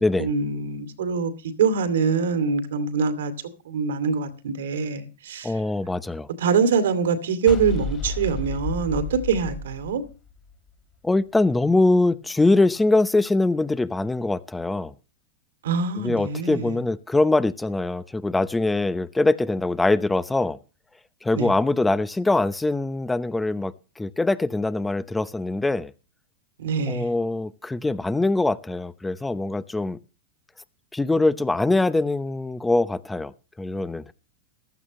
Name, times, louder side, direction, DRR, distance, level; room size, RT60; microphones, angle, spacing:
voice 1, 0.2-1.3 1.6-3.3 3.7-5.5 6.4-10.0 15.6-16.8 21.3-21.5 26.6-27.1, right 5 dB, 80° right, 2.5 m, -24 dB
voice 2, 5.4-6.3 11.0-14.9 16.0-20.6 21.2-25.9 26.9-30.0 30.9-33.3 33.6-34.0, left 2 dB, 10° left, 0.8 m, -23 dB
sound 1, 7.5-10.7, left 3 dB, 30° left, 2.9 m, -32 dB
15.0 x 12.5 x 3.1 m
hypercardioid pair, 120°, 0 cm